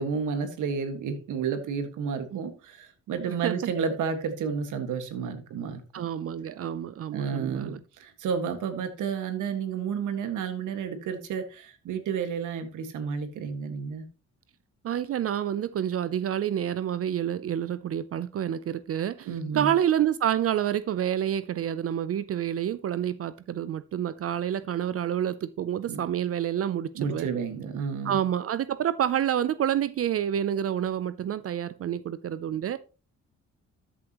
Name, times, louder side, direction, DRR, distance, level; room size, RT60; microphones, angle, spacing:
voice 1, 0.0-6.1 7.1-14.1 19.3-19.7 25.9-26.0 26.9-28.2, right 6 dB, 80° right, 1.8 m, -31 dB
voice 2, 5.9-7.8 14.8-19.3 19.5-27.3 28.0-32.8, right 10 dB, 50° right, 0.5 m, -28 dB
13.0 x 7.3 x 3.0 m
cardioid pair, 90°, 30 cm